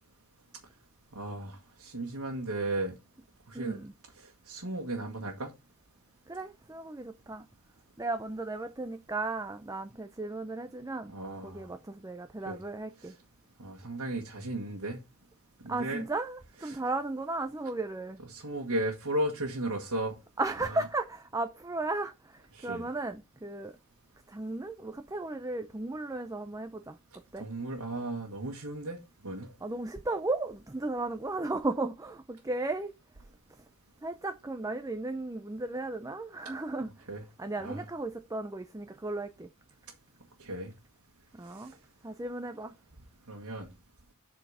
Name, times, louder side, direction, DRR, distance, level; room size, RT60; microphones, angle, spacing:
voice 1, 1.1-2.9 3.5-3.8 4.2-5.5 11.1-11.7 12.4-12.6 13.0-13.1 13.6-15.0 15.6-16.0 16.6-16.8 18.3-20.1 22.5-22.9 27.4-29.0 29.2-29.5 37.1-37.2 37.6-37.8 40.4-40.7 41.6-41.7 43.3-43.7, right 1 dB, 85° right, 1.6 m, -35 dB
voice 2, 3.5-3.9 6.3-7.4 8.0-11.1 11.4-13.1 15.7-18.2 20.4-23.8 24.3-27.0 27.3-27.5 29.6-32.9 34.0-36.9 37.4-39.5 41.3-41.8 42.0-42.7, right 2 dB, 15° right, 0.5 m, -35 dB
8.1 x 4.3 x 5.6 m
head